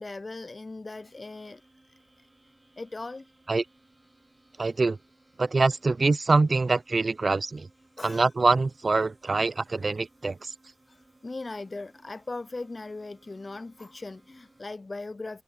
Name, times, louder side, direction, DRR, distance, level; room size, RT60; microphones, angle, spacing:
voice 1, 0.0-1.6 2.8-3.3 8.0-8.3 10.9-11.0 11.2-15.4, left 3 dB, 45° left, 0.3 m, -38 dB
sound 1, 1.0-14.7, right 2 dB, 30° right, 1.7 m, -62 dB
voice 2, 4.6-5.0 5.4-7.7 8.0-10.5, right 3 dB, 55° right, 0.3 m, -24 dB
cardioid pair, 55°, 0 cm